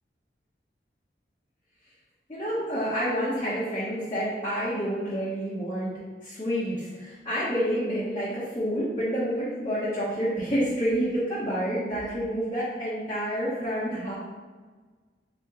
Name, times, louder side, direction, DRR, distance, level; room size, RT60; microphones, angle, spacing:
voice 1, 2.3-5.9 6.2-14.1, equal, 25° left, -10 dB, 0.9 m, -28 dB
4.2 x 2.9 x 3.6 m, 1.4 s
head